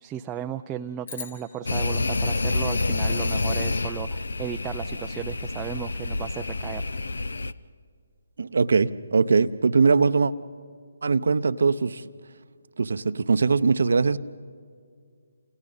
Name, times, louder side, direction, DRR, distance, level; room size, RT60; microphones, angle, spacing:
voice 1, 0.0-7.0, right 10 dB, 15° right, 6 dB, 0.5 m, -35 dB
sound 1, 1.0-3.5, left 5 dB, 60° left, 4.1 m, -44 dB
sound 2, 1.7-7.5, left 3 dB, 75° left, 0.7 m, -28 dB
voice 2, 8.4-10.3 11.0-12.0 12.8-14.2, right 4 dB, 65° right, 13 dB, 0.7 m, -21 dB
29.5 x 28.5 x 4.0 m, 2.1 s
figure-of-eight pair, 150°, 0 cm